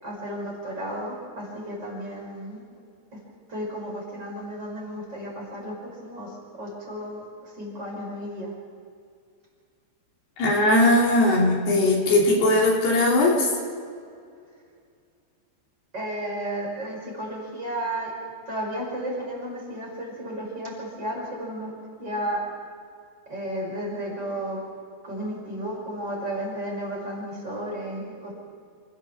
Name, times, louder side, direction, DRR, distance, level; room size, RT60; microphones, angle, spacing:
voice 1, 0.0-2.6 3.1-3.2 3.5-8.5 15.9-18.1 18.5-21.7 22.0-22.4 23.3-24.6 25.0-28.3, right 1 dB, 25° right, -3 dB, 5.9 m, -33 dB
voice 2, 10.4-13.5, left 1 dB, 60° left, -2 dB, 4.9 m, -19 dB
27.5 x 15.5 x 7.3 m, 2.2 s
omnidirectional pair, 5.4 m